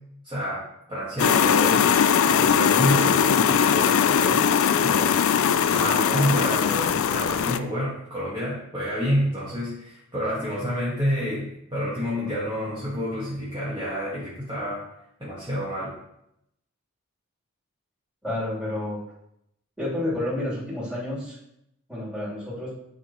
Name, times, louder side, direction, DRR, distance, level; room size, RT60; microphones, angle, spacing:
voice 1, 0.2-0.6 0.9-1.9 2.2-4.5 4.8-5.2 5.7-14.8 15.2-15.9, equal, 20° right, -9 dB, 1.5 m, -28 dB
sound 1, 1.2-7.6, left 7 dB, 70° left, 0.3 m, -20 dB
voice 2, 18.2-19.0 19.8-21.4 21.9-22.7, left 1 dB, 5° right, -9 dB, 3.0 m, -30 dB
9.6 x 5.0 x 3.0 m, 0.79 s
head